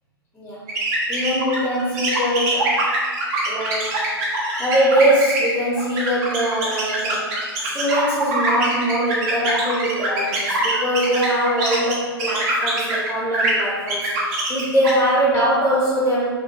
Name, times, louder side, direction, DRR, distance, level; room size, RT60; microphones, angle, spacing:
sound 1, 0.7-13.1 13.3-14.9, right 2 dB, 35° right, 1.3 m, -23 dB
voice 1, 1.1-2.8 3.4-3.9 4.6-16.3, right 1 dB, 5° left, -8 dB, 1.1 m, -22 dB
6.9 x 2.6 x 2.6 m, 1.6 s
hypercardioid pair, 130°, 13 cm